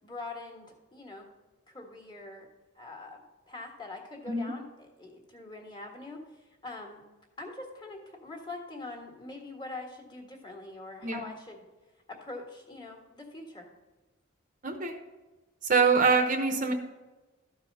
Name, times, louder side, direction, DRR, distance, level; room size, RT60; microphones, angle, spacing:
voice 1, 0.0-1.3 1.7-2.5 2.7-7.0 7.4-11.7 12.1-13.7, left 2 dB, 20° left, 0 dB, 1.7 m, -43 dB
voice 2, 14.6-15.0 15.6-16.7, right 4 dB, 40° right, 5 dB, 0.9 m, -24 dB
13.0 x 4.8 x 5.4 m, 1.2 s
head